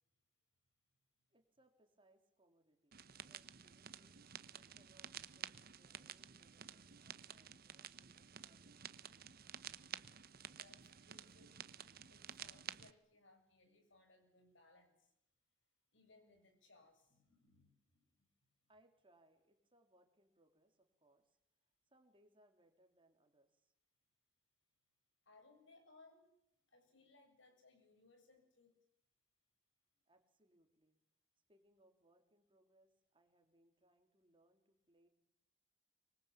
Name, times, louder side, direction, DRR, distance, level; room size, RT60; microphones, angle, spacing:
voice 1, 1.3-4.2 4.5-9.2 18.7-21.4 21.9-23.7 30.1-31.0 31.5-35.1, right 1 dB, 25° right, 5 dB, 3.5 m, -73 dB
sound 1, 2.9-12.9, right 9 dB, 50° right, 1.0 m, -52 dB
voice 2, 10.5-11.6 12.1-15.1 15.9-18.3 25.3-26.3 26.7-28.7, left 2 dB, 70° left, 5 dB, 7.5 m, -67 dB
25.5 x 23.5 x 8.8 m, 0.81 s
head